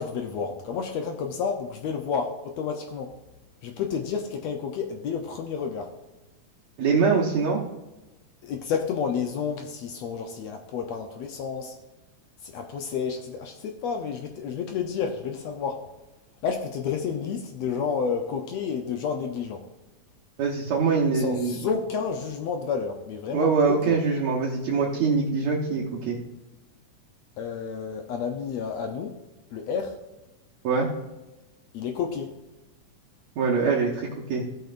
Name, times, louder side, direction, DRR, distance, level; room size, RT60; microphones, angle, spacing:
voice 1, 0.0-3.1 3.6-5.9 8.4-11.7 12.4-15.8 16.4-19.6 21.1-24.0 27.4-29.2 29.5-30.0 31.7-32.3, left 6 dB, 75° left, 4 dB, 1.6 m, -30 dB
voice 2, 6.8-7.6 20.4-21.6 23.3-26.2 30.6-30.9 33.4-34.4, right 5 dB, 65° right, -4 dB, 2.1 m, -23 dB
16.0 x 6.6 x 2.5 m, 1.0 s
omnidirectional pair, 3.7 m